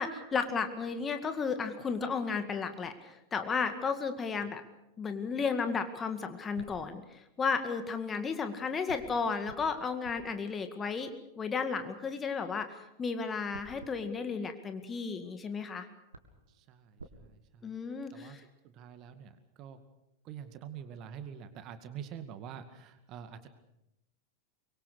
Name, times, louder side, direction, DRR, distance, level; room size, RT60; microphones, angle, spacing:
voice 1, 0.0-4.6 5.0-11.1 11.4-15.9 17.6-18.4, left 5 dB, 20° left, 8 dB, 2.0 m, -33 dB
sound 1, 6.5-7.7 8.9-12.2 13.5-15.4 15.8-15.9 16.1-17.2, right 2 dB, 75° right, 2.1 m, -54 dB
voice 2, 16.5-17.7 18.1-18.4 18.6-19.8 20.2-23.5, right 8 dB, 35° right, 9 dB, 2.1 m, -46 dB
24.5 x 23.0 x 6.7 m, 0.86 s
figure-of-eight pair, 90°, 0 cm